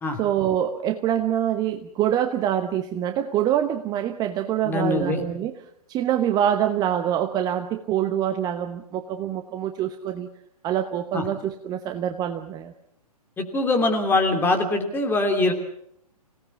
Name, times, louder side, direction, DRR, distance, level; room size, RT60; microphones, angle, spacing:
voice 1, 0.2-5.5 5.9-10.3 10.6-12.7, right 10 dB, 20° right, 7 dB, 1.0 m, -25 dB
voice 2, 4.6-5.2 11.1-11.2 13.4-15.5, left 2 dB, 10° left, 4 dB, 2.9 m, -23 dB
26.5 x 18.0 x 7.1 m, 0.74 s
figure-of-eight pair, 120°, 20 cm